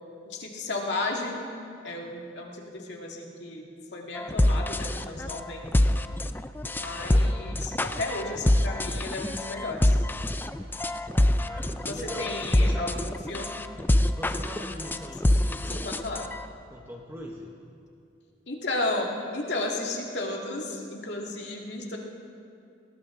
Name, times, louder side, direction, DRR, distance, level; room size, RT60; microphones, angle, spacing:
voice 1, 0.2-1.5 1.8-3.7 3.9-5.6 6.8-10.0 11.8-13.5 15.7-16.2 18.5-22.0, left 2 dB, 65° left, 0 dB, 2.1 m, -33 dB
sound 1, 4.2-16.5, left 1 dB, 10° left, 0.3 m, -25 dB
voice 2, 7.1-7.6 11.4-12.9 13.7-15.8 16.7-17.5, equal, 10° right, -1 dB, 1.0 m, -42 dB
19.0 x 18.0 x 3.8 m, 2.6 s
head